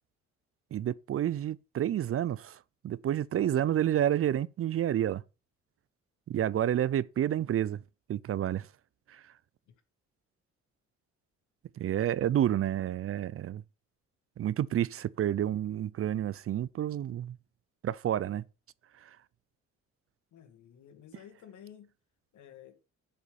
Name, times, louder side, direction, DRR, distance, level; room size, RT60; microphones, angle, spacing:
voice 1, 0.7-2.6 2.8-5.2 6.3-7.8 8.1-8.7 9.1-9.2 11.8-13.6 14.4-17.4 17.8-18.4, right 11 dB, 50° right, 0.5 m, -29 dB
voice 2, 20.3-21.9 22.3-22.8, left 9 dB, 70° left, 2.0 m, -52 dB
7.8 x 6.8 x 6.9 m
cardioid pair, 90°, 30 cm